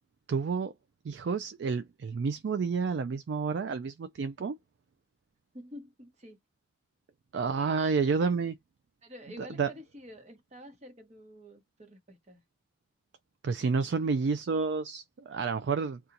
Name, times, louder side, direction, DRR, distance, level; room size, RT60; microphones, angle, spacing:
voice 1, 0.3-0.7 1.0-4.6 7.3-8.6 9.4-9.7 13.4-16.0, right 5 dB, 75° right, 0.4 m, -30 dB
voice 2, 5.5-6.4 9.0-12.4, left 1 dB, 40° right, 1.0 m, -48 dB
2.8 x 2.4 x 3.8 m
head